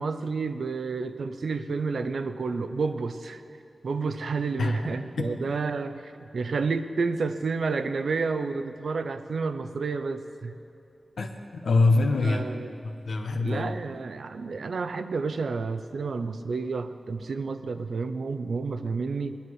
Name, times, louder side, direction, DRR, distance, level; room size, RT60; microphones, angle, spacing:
voice 1, 0.0-3.4 3.8-10.5 12.2-12.7 13.4-19.4, right 4 dB, 80° right, 10 dB, 0.6 m, -30 dB
voice 2, 11.2-12.5 13.1-13.7, left 3 dB, 85° left, 4 dB, 1.1 m, -24 dB
20.0 x 10.5 x 4.8 m, 2.6 s
wide cardioid pair, 95°, 0 cm